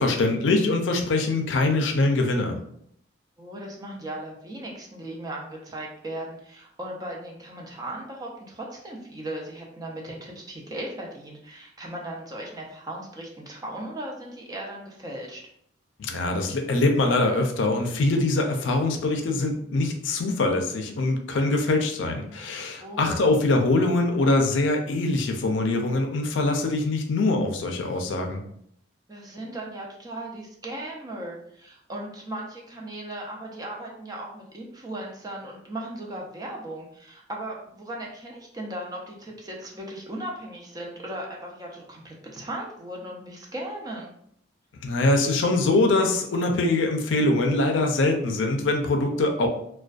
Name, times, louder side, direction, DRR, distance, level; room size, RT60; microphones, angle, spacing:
voice 1, 0.0-2.6 16.0-28.4 44.8-49.5, left 2 dB, 75° left, 3 dB, 0.4 m, -23 dB
voice 2, 3.4-15.4 22.8-23.2 29.1-44.1, right 1 dB, 20° right, -1 dB, 0.4 m, -37 dB
2.4 x 2.2 x 2.3 m, 0.68 s
head